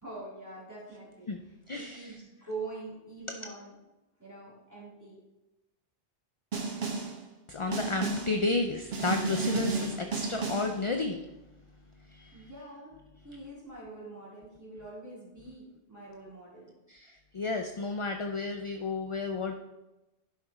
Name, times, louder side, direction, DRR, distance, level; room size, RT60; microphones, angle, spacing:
voice 1, 0.0-1.3 1.7-3.7 4.2-5.2 12.3-13.0 13.2-16.7, right 3 dB, 15° right, -7 dB, 3.5 m, -44 dB
voice 2, 1.3-2.1 7.5-11.2 12.1-12.5 16.9-19.5, left 3 dB, 40° left, 5 dB, 0.5 m, -32 dB
Snare drum, 6.5-7.2 7.7-8.4 8.9-10.8, right 3 dB, 70° right, 1.4 m, -32 dB
11.0 x 5.9 x 4.2 m, 1.0 s
omnidirectional pair, 1.1 m